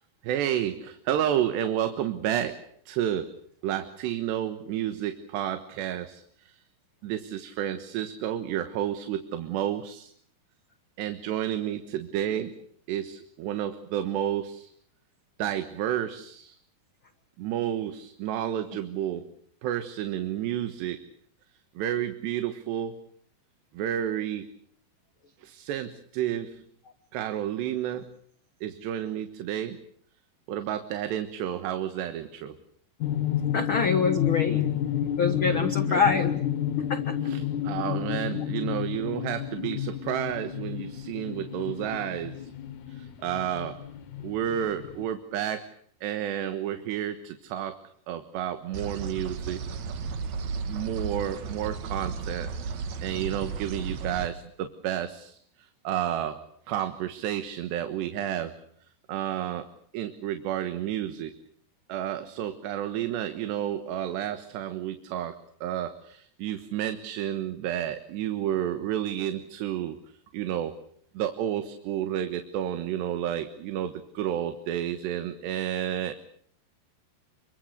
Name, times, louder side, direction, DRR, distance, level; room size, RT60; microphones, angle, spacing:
voice 1, 0.2-3.4 3.6-6.6 7.0-10.1 11.0-12.5 12.9-14.7 15.4-16.6 17.4-19.3 19.6-21.0 21.8-23.0 23.8-24.5 25.4-26.6 27.1-28.1 28.6-29.8 30.5-32.6 35.5-36.0 37.3-42.5 42.9-43.8 44.2-45.7 46.0-47.8 48.1-49.6 50.6-52.7 53.0-56.4 56.7-58.6 59.1-59.7 59.9-61.3 61.9-70.0 70.3-70.8 71.2-76.1, right 11 dB, 80° right, 9 dB, 3.5 m, -31 dB
sound 1, 33.0-45.1, left 10 dB, 60° left, 2.4 m, -30 dB
voice 2, 33.5-34.7 35.2-36.4 36.9-37.2, left 5 dB, 90° left, 6 dB, 1.1 m, -25 dB
sound 2, 48.7-54.3, right 5 dB, 60° right, 2.0 m, -34 dB
28.0 x 24.0 x 6.6 m, 0.63 s
omnidirectional pair, 4.9 m